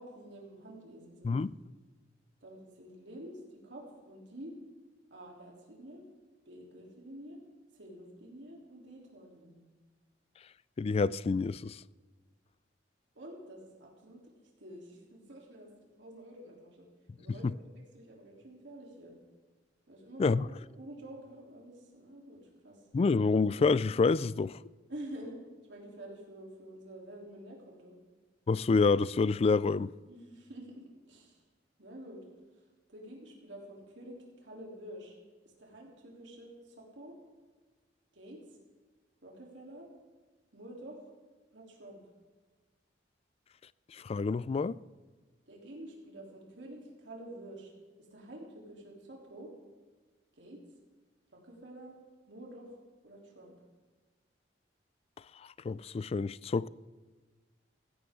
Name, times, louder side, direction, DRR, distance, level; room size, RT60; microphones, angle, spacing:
voice 1, 0.0-1.4 2.4-4.5 5.1-6.0 6.4-7.4 7.7-9.6 13.1-14.3 14.6-16.9 17.2-19.2 19.9-20.5 20.7-22.8 24.9-25.4 25.7-27.9 30.1-31.4 31.8-32.2 32.9-35.1 35.6-37.2 38.1-38.4 39.2-39.9 40.5-41.1 41.5-42.0 45.5-47.7 48.1-49.5 50.3-50.6 51.3-51.9 52.3-52.8 53.0-53.5, right 1 dB, 75° right, 3.3 m, -48 dB
voice 2, 10.8-11.8 17.4-17.5 20.2-20.5 22.9-24.6 28.5-29.9 43.9-44.8 55.4-56.7, left 4 dB, 35° left, 0.3 m, -28 dB
16.0 x 15.5 x 3.7 m
head